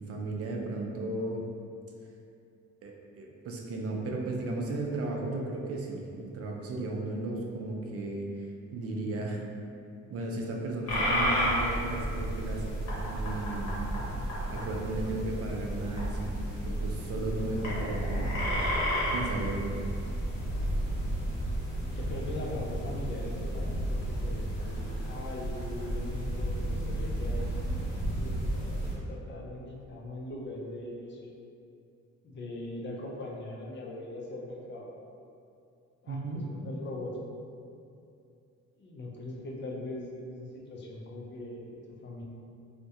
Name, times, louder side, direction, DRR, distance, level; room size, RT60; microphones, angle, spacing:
voice 1, 0.0-1.4 2.8-9.4 10.1-12.8 13.0-13.8 14.5-16.4 16.6-18.4 19.1-19.7 36.1-36.5, right 2 dB, 50° right, 0 dB, 0.4 m, -35 dB
sound 1, 10.9-28.9, equal, 60° left, 0.9 m, -32 dB
voice 2, 21.9-31.3 32.2-34.9 36.0-37.1 38.8-42.2, left 1 dB, 40° left, -2 dB, 0.4 m, -41 dB
2.3 x 2.1 x 2.7 m, 2.5 s
cardioid pair, 90°, 30 cm